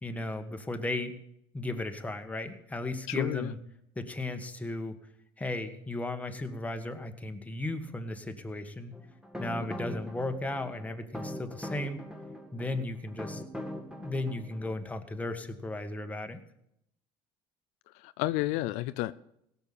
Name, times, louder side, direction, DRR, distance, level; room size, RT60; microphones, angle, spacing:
voice 1, 0.0-1.2 1.5-3.6 4.0-5.0 5.4-9.0 9.4-12.0 12.5-13.4 14.0-16.4, left 2 dB, 10° left, 6 dB, 1.6 m, -35 dB
voice 2, 3.1-3.5 17.9-19.1, left 17 dB, 75° left, 13 dB, 0.5 m, -31 dB
sound 1, 8.9-14.7, equal, 5° right, 1.9 m, -41 dB
17.0 x 7.1 x 8.7 m, 0.79 s
supercardioid pair, 95°, 12 cm